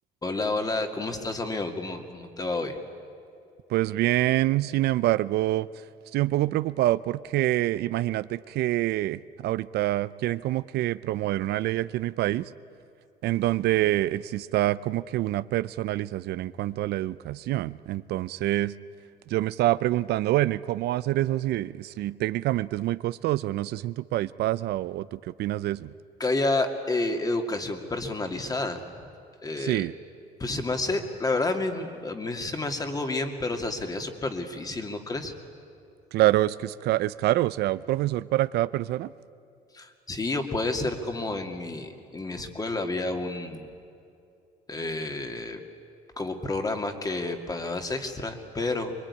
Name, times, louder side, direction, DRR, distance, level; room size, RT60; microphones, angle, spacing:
voice 1, 0.2-2.8 26.2-28.8 29.4-29.9 30.4-35.3 39.7-43.7 44.7-45.6 46.2-49.0, left 2 dB, 20° left, 5 dB, 2.4 m, -30 dB
voice 2, 3.7-5.7 6.1-12.5 13.2-18.7 19.3-25.9 29.6-29.9 36.1-39.1, right 15 dB, 75° right, 16 dB, 0.6 m, -26 dB
25.0 x 22.0 x 9.8 m, 2.5 s
cardioid pair, 110°, 17 cm